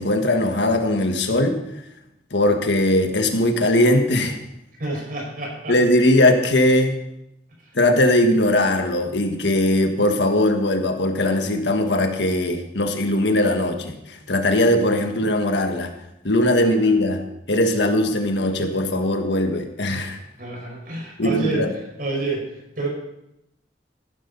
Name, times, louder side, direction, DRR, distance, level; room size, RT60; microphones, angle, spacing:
voice 1, 0.0-1.6 2.3-4.4 5.7-7.0 7.7-15.9 16.2-17.2 17.5-20.2 21.2-21.7, left 1 dB, 85° left, 5 dB, 1.6 m, -20 dB
voice 2, 4.8-5.8 7.6-7.7 16.6-16.9 20.4-21.7 22.0-22.9, right 2 dB, 55° right, 0 dB, 4.8 m, -28 dB
14.5 x 12.5 x 4.0 m, 0.83 s
head